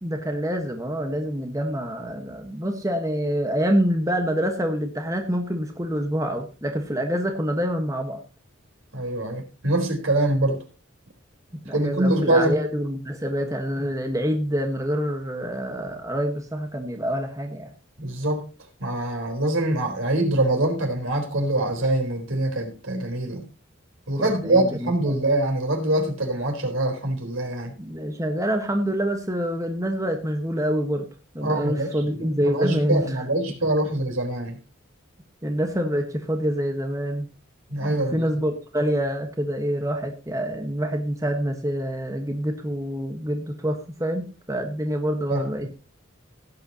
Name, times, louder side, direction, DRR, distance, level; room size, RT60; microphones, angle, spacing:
voice 1, 0.0-8.2 11.6-17.7 24.2-25.2 27.8-31.1 31.3-33.2 35.4-37.3 37.8-45.7, equal, 15° right, 1.3 m, -26 dB
voice 2, 8.9-10.6 11.7-12.5 18.0-18.5 18.8-23.4 24.1-27.7 31.4-31.9 32.4-34.6 37.7-38.2 45.3-45.4, right 1 dB, 85° right, 4.0 m, -24 dB
17.0 x 9.1 x 2.9 m
head